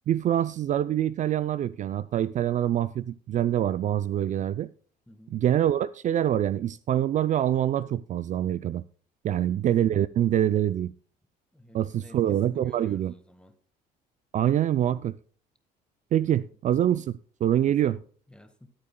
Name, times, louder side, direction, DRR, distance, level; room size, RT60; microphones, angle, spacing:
voice 1, 0.1-4.7 5.3-8.8 9.2-10.9 11.7-13.1 14.3-15.2 16.1-17.1 17.4-18.0, right 11 dB, 45° right, 0.4 m, -25 dB
voice 2, 5.1-5.4 9.3-9.7 11.5-13.6 16.1-16.5 17.6-18.7, left 1 dB, 5° left, 1.6 m, -52 dB
19.0 x 8.7 x 2.2 m
cardioid pair, 110°, 17 cm